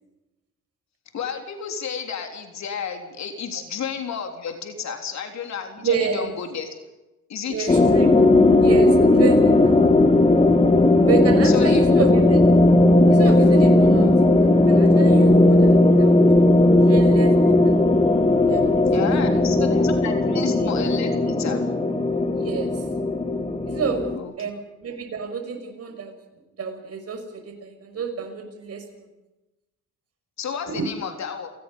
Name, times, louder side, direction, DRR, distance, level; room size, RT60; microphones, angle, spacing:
voice 1, 1.1-6.7 7.3-7.9 11.4-11.8 18.9-21.7 24.2-24.3 30.4-31.5, left 7 dB, 65° left, 4 dB, 3.6 m, -32 dB
voice 2, 5.8-6.3 7.5-8.1 8.6-9.8 11.0-12.6 13.1-14.1 14.4-16.2 16.8-17.4 17.6-17.7 18.5-18.8 19.1-19.4 19.7-19.8 20.2-20.4 22.3-22.7 23.7-24.0 24.4-26.1 26.6-29.1 30.7-30.9, right 5 dB, 55° right, 5 dB, 6.0 m, -29 dB
sound 1, 7.7-24.2, left 2 dB, 20° left, 3.0 m, -16 dB
29.5 x 18.5 x 5.5 m, 1.0 s
cardioid pair, 90°, 30 cm